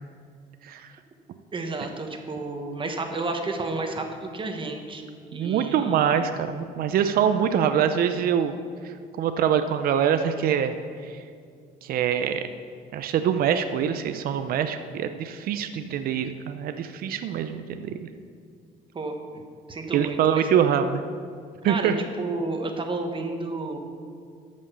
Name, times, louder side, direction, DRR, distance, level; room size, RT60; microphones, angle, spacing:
voice 1, 1.5-5.0 5.3-6.3 18.9-19.4 19.7-20.5 21.7-23.8, right 3 dB, 30° right, 4 dB, 1.2 m, -31 dB
voice 2, 5.3-8.5 9.2-10.8 11.1-11.2 11.8-12.4 12.9-18.1 19.9-21.0 21.6-21.9, right 8 dB, 60° right, 9 dB, 0.6 m, -24 dB
12.5 x 5.3 x 6.7 m, 2.3 s
cardioid pair, 110°, 17 cm